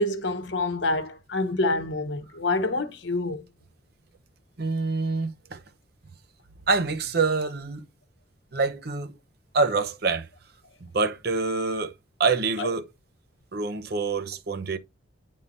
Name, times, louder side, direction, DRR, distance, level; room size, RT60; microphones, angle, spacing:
voice 1, 0.0-3.4 12.6-12.7, left 2 dB, 70° left, 0.9 m, -27 dB
voice 2, 4.6-5.6 6.7-7.9 8.5-9.1 9.5-10.3 10.8-11.9 12.2-12.9 13.5-14.8, right 4 dB, 55° right, 0.7 m, -26 dB
9.6 x 3.7 x 2.6 m
head